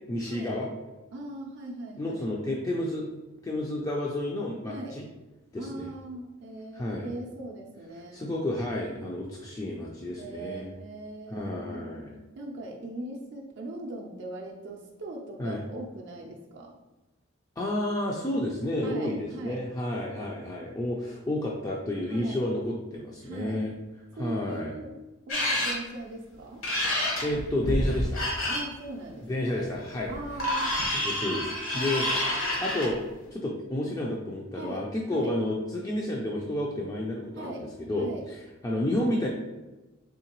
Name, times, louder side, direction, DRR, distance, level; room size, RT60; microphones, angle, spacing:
voice 1, 0.1-0.7 2.0-3.0 3.4-5.0 5.5-5.9 6.7-7.1 8.1-10.7 11.3-12.2 15.4-15.6 17.6-23.7 24.1-24.7 26.9-28.2 29.3-30.1 30.9-32.1 32.6-33.0 33.3-39.3, left 1 dB, 15° left, -3 dB, 0.3 m, -31 dB
voice 2, 1.1-2.3 4.7-5.0 5.6-8.3 10.2-11.9 12.4-16.7 18.8-19.6 22.1-22.4 23.2-23.6 24.2-24.9 25.3-26.6 28.5-29.7 30.1-30.8 34.5-34.8 35.1-35.3 37.4-37.7 38.0-38.3, right 2 dB, 55° right, -1 dB, 0.4 m, -40 dB
sound 1, 25.3-25.7 26.6-28.6 30.0-32.9, left 1 dB, 70° left, 1.1 m, -28 dB
3.7 x 3.2 x 2.9 m, 1.1 s
head